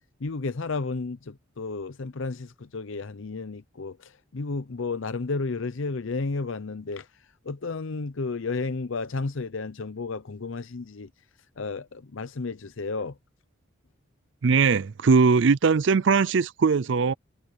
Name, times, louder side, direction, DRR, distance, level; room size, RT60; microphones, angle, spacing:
voice 1, 0.2-7.1 7.4-11.1 11.6-13.2, left 3 dB, 70° left, 0.7 m, -32 dB
voice 2, 14.4-17.1, right 5 dB, 60° right, 0.4 m, -20 dB
head